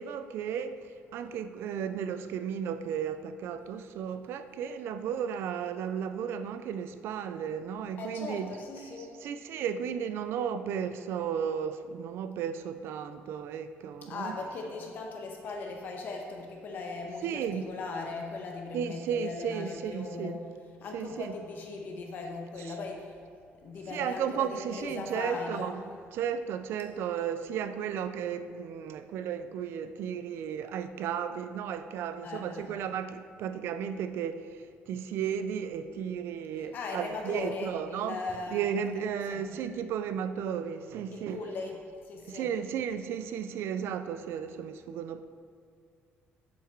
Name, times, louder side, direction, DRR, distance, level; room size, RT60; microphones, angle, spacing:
voice 1, 0.0-8.6 9.0-14.4 17.2-17.6 18.7-20.3 20.9-21.3 22.6-22.8 23.9-25.8 26.1-38.2 38.5-41.5 42.2-45.2, right 8 dB, 65° right, 0.3 m, -34 dB
voice 2, 8.0-9.1 14.1-20.4 20.8-23.1 23.6-24.5 24.8-25.8 32.2-32.7 36.7-38.6 39.3-39.5 41.1-41.8 42.1-42.5, left 3 dB, 45° left, 1.1 m, -38 dB
7.2 x 5.8 x 4.5 m
cardioid pair, 175°, 4 cm